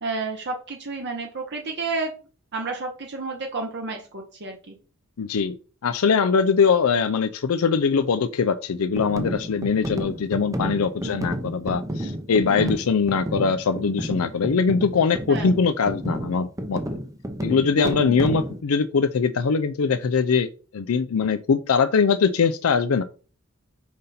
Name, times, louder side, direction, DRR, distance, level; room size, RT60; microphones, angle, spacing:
voice 1, 0.0-2.1 2.5-4.7 11.0-11.2 12.5-12.8 15.3-15.5 17.8-18.2, right 3 dB, 50° right, 2 dB, 1.0 m, -31 dB
voice 2, 5.2-5.6 5.8-16.8 17.4-23.0, left 5 dB, 70° left, 10 dB, 0.5 m, -22 dB
sound 1, 9.0-18.6, equal, 15° right, 0.8 m, -31 dB
5.5 x 5.1 x 4.2 m, 0.37 s
head